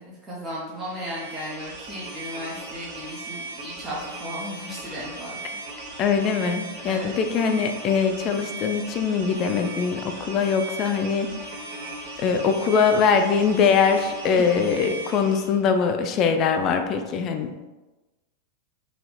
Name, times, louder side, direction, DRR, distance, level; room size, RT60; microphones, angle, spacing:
voice 1, 0.0-5.4 6.8-7.1 14.4-14.5, equal, 20° right, -6 dB, 1.0 m, -35 dB
sound 1, 0.8-15.6, right 2 dB, 55° right, 0.6 m, -38 dB
voice 2, 6.0-11.4 12.2-17.7, left 6 dB, 35° left, 6 dB, 0.3 m, -22 dB
3.9 x 2.9 x 3.1 m, 1.1 s
figure-of-eight pair, 90°, 0 cm